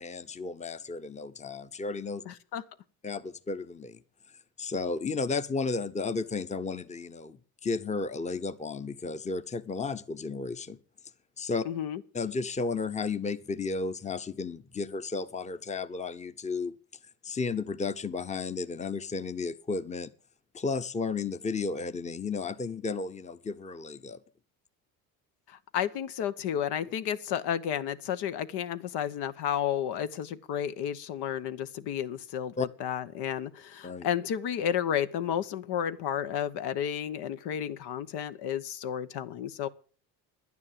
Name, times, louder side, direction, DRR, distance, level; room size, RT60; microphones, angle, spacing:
voice 1, 0.0-2.2 3.0-4.0 4.6-10.8 11.4-11.6 12.1-16.7 17.2-20.1 20.5-24.2 32.6-32.7 33.8-34.1, left 4 dB, 15° left, 0.9 m, -33 dB
voice 2, 2.3-2.6 11.6-12.0 25.5-39.7, left 9 dB, 70° left, 1.1 m, -32 dB
11.0 x 9.7 x 7.5 m
supercardioid pair, 90°, 41 cm